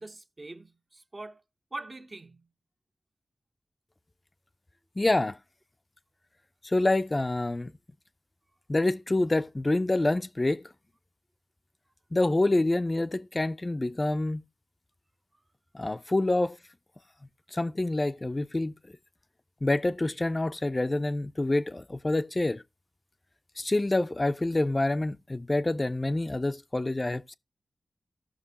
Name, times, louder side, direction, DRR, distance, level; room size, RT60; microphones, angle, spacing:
voice 1, 0.0-1.4 1.7-2.5, right 2 dB, 40° right, 0.7 m, -43 dB
voice 2, 5.0-5.4 6.6-7.7 8.7-10.6 12.1-14.4 15.7-16.6 17.5-18.7 19.6-22.6 23.6-27.3, left 2 dB, 30° left, 0.4 m, -27 dB
15.5 x 6.1 x 2.8 m
wide cardioid pair, 65°, 0 cm